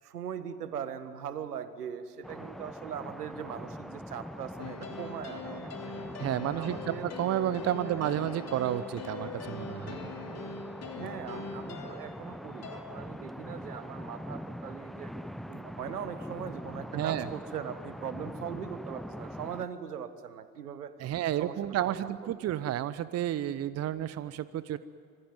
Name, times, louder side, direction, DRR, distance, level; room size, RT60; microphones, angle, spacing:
voice 1, 0.0-6.0 6.5-7.1 7.8-8.1 11.0-15.1 15.5-20.9 21.4-22.5, right 8 dB, 75° right, 13 dB, 1.6 m, -40 dB
sound 1, 2.2-19.7, equal, ahead, 0.8 m, -43 dB
sound 2, 4.6-12.8, left 4 dB, 35° left, 3.1 m, -42 dB
voice 2, 6.2-10.0 16.9-17.3 21.0-24.8, right 12 dB, 35° right, 16 dB, 0.9 m, -31 dB
26.0 x 23.5 x 9.5 m, 2.3 s
figure-of-eight pair, 60°, 47 cm